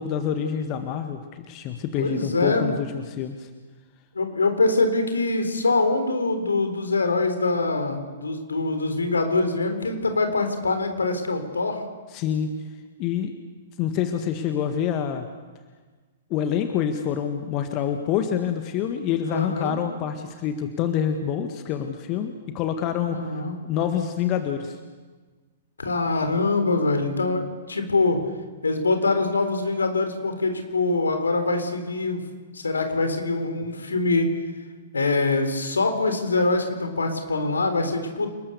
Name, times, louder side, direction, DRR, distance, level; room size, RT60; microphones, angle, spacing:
voice 1, 0.0-3.5 12.1-12.5 13.0-13.3 13.8-15.3 16.3-24.8, left 8 dB, 35° left, 7 dB, 1.8 m, -27 dB
voice 2, 2.0-2.7 4.2-11.8 19.3-19.8 23.1-23.5 25.8-28.2 28.6-32.2 32.5-34.3 34.9-38.3, left 3 dB, 75° left, 6 dB, 3.8 m, -24 dB
29.5 x 20.0 x 6.9 m, 1.4 s
figure-of-eight pair, 110°, 0 cm